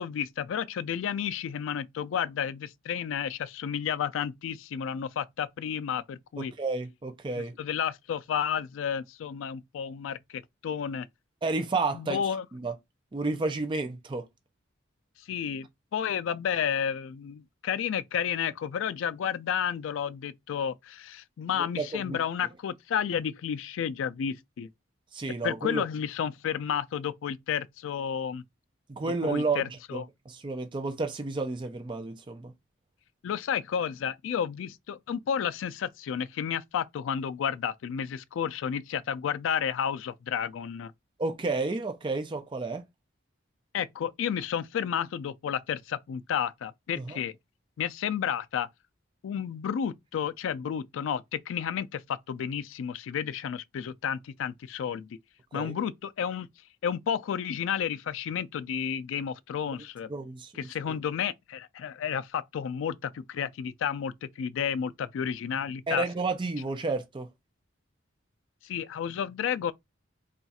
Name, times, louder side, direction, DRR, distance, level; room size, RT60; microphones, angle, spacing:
voice 1, 0.0-6.5 7.4-11.1 11.9-12.4 15.3-24.7 25.4-28.4 29.2-30.0 33.2-40.9 43.7-47.3 47.8-48.7 49.2-55.2 55.5-56.5 56.8-60.1 60.5-66.0 68.6-69.7, left 8 dB, 70° left, 0.3 m, -31 dB
voice 2, 6.4-7.6 11.4-12.2 12.5-12.7 13.1-14.3 21.6-22.2 25.1-25.8 28.9-32.5 41.2-42.8 47.0-47.2 55.5-55.7 60.1-60.5 60.9-61.0 65.9-67.3, right 3 dB, 25° right, 0.4 m, -31 dB
2.4 x 2.3 x 4.0 m
head